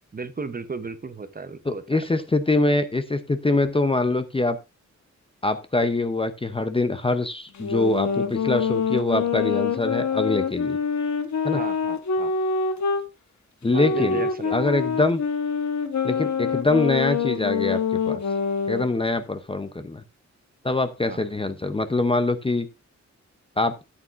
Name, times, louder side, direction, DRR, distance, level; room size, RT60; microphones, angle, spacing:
voice 1, 0.1-1.8 2.1-2.2 11.5-12.3 13.7-14.6 21.1-21.2, right 4 dB, 30° right, 0.8 m, -34 dB
voice 2, 1.7-4.6 5.4-10.8 11.4-11.6 13.6-14.2 14.5-15.2 16.0-18.2 18.7-20.0 20.6-22.7 23.6-23.7, left 2 dB, 20° left, 0.6 m, -24 dB
sound 1, 7.6-13.1 13.7-18.9, left 5 dB, 75° left, 1.1 m, -25 dB
13.0 x 8.4 x 2.5 m
wide cardioid pair, 165°, 29 cm